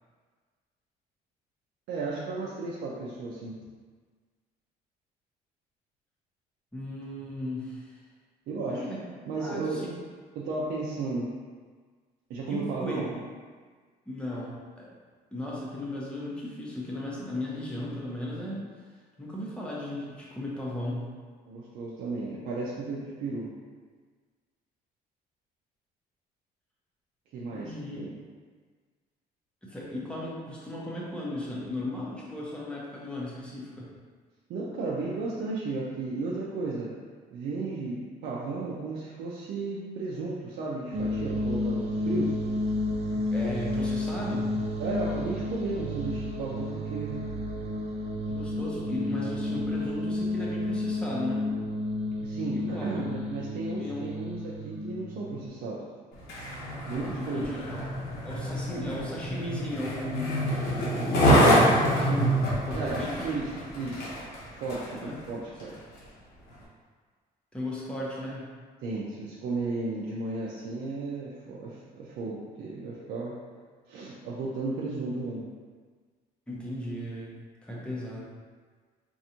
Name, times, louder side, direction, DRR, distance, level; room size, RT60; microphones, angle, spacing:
voice 1, 1.9-3.6 8.5-8.9 9.3-9.9 10.4-11.3 12.3-13.1 21.5-23.5 27.3-28.1 34.5-36.9 37.3-42.4 44.8-47.2 52.2-55.8 56.8-57.5 62.7-63.5 63.7-64.1 64.6-65.7 68.8-73.4 73.9-75.5, right 3 dB, 75° right, -5 dB, 0.6 m, -34 dB
voice 2, 6.7-8.0 8.7-9.0 9.4-9.9 12.5-13.1 14.1-14.9 15.3-18.6 19.2-21.0 27.5-28.0 29.6-33.9 43.1-44.5 48.3-51.4 52.5-53.0 53.7-54.0 57.1-57.9 58.2-60.4 61.0-63.4 65.0-65.2 67.5-68.5 76.5-77.3 77.6-78.2, left 1 dB, 5° left, -6 dB, 1.0 m, -36 dB
sound 1, 40.9-55.5, left 1 dB, 40° right, 0.7 m, -31 dB
Skateboard, 56.1-65.0 65.6-65.7, equal, 75° left, 1.2 m, -26 dB
4.7 x 2.6 x 2.8 m, 1.5 s
cardioid pair, 110°, 17 cm